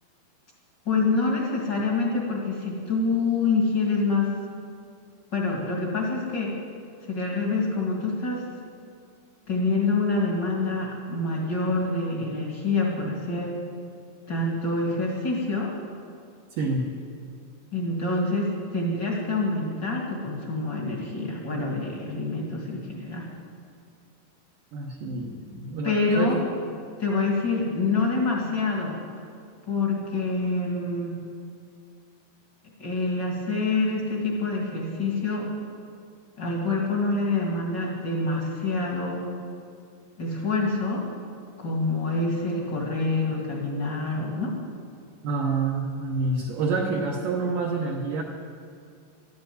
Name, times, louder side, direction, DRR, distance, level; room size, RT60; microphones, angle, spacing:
voice 1, 0.8-4.3 5.3-6.6 7.0-8.5 9.5-13.5 14.3-15.7 17.7-23.3 25.8-26.4 27.0-29.0 29.7-31.1 32.8-35.5 36.4-39.2 40.2-41.0 41.6-44.5, left 3 dB, 45° left, -1 dB, 1.5 m, -26 dB
voice 2, 16.6-16.9 24.7-26.5 45.2-48.2, right 3 dB, 75° right, -1 dB, 2.0 m, -27 dB
12.5 x 9.6 x 9.2 m, 2.2 s
omnidirectional pair, 5.2 m